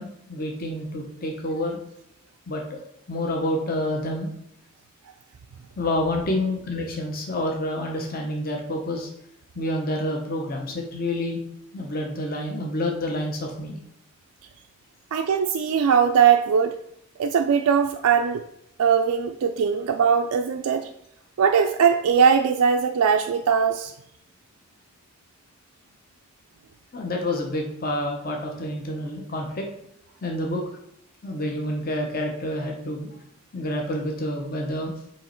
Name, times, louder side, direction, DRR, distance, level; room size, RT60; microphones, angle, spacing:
voice 1, 0.0-1.8 2.5-2.8 3.1-4.3 5.8-9.1 9.6-11.4 11.7-13.8 26.9-29.7 30.2-30.6 31.2-33.1 33.5-34.9, left 1 dB, 40° left, 1 dB, 0.8 m, -28 dB
voice 2, 15.1-16.8 17.2-18.4 18.8-20.9 21.4-23.9, right 7 dB, 90° right, 5 dB, 0.4 m, -20 dB
7.6 x 3.0 x 4.4 m, 0.76 s
head